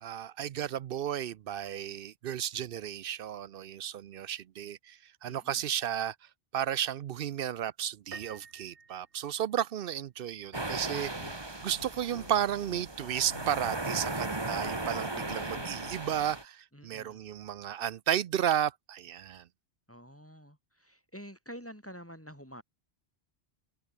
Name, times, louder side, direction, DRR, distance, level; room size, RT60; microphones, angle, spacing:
voice 1, 0.0-6.2 6.5-19.5, right 10 dB, 65° right, 0.7 m, -33 dB
voice 2, 5.3-5.6 16.7-17.2 19.9-22.6, equal, 10° left, 6.7 m, -48 dB
Piano, 8.1-9.9, right 5 dB, 85° right, 2.1 m, -49 dB
sound 1, 10.5-16.4, right 2 dB, 25° right, 1.8 m, -37 dB
sound 2, 11.1-11.4 11.7-12.9 13.1-13.8 14.1-16.0, left 3 dB, 85° left, 3.0 m, -51 dB
omnidirectional pair, 1.1 m